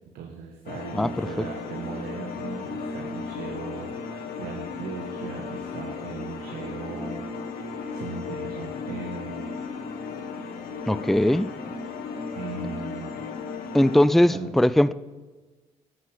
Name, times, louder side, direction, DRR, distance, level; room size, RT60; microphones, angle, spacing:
voice 1, 0.1-7.3 7.6-9.5 12.3-13.2 14.3-14.5, right 5 dB, 80° right, 1.5 m, -38 dB
sound 1, 0.7-14.0, left 4 dB, 75° left, 1.5 m, -35 dB
voice 2, 10.9-11.5 13.7-14.9, left 1 dB, ahead, 0.4 m, -20 dB
10.5 x 9.8 x 8.0 m
supercardioid pair, 55°, 15 cm